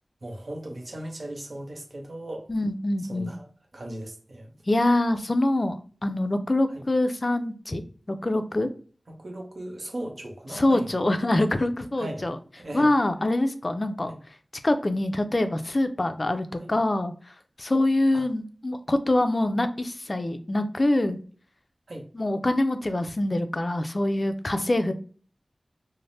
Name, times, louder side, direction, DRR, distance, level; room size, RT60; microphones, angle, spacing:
voice 1, 0.2-2.5 3.0-3.5 3.7-4.5 6.7-6.9 9.1-10.9 12.0-12.3 12.6-12.9 14.1-14.2 16.5-16.7 18.1-18.3 21.9-22.1, right 1 dB, 65° right, 0.8 m, -37 dB
voice 2, 2.5-3.3 4.7-7.8 8.1-8.7 10.5-12.4 12.7-14.1 14.6-17.1 17.6-21.2 22.1-24.9, left 1 dB, 45° left, 0.3 m, -25 dB
3.2 x 2.0 x 2.6 m
wide cardioid pair, 60°, 0 cm